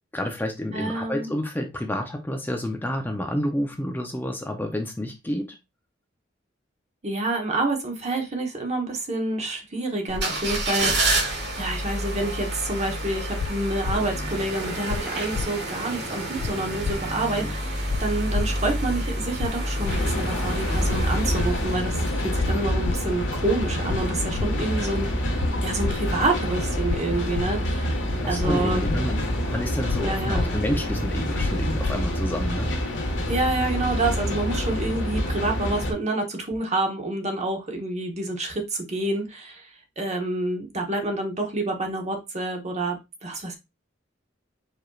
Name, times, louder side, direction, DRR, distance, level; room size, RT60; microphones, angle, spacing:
voice 1, 0.1-5.6 17.4-17.5 28.2-32.7, left 1 dB, 10° left, 0.6 m, -29 dB
voice 2, 0.7-1.3 7.0-11.3 11.5-28.0 28.3-28.8 30.0-30.5 33.3-39.7 40.0-43.6, right 2 dB, 35° right, 1.1 m, -28 dB
sound 1, 10.1-22.6 23.0-23.1, right 1 dB, 60° right, 1.6 m, -29 dB
sound 2, 13.4-13.5 13.8-14.0 14.9-15.0 15.3-15.5 16.4-16.5 16.8-17.0 17.9-18.0 18.3-18.5 19.4-19.5 19.8-20.0 20.9-21.0 21.3-21.5 22.4-22.5 22.8-23.0 23.9-24.0 24.3-24.5 25.4-25.5 25.8-26.0 26.9-27.0 27.3-27.5 28.4-28.5 28.8-29.0 29.9-30.0 30.3-30.5 31.4-31.5 31.8-32.0, left 5 dB, 55° left, 0.3 m, -28 dB
sound 3, 19.9-35.9, equal, 75° left, 1.5 m, -27 dB
4.9 x 4.5 x 2.4 m
head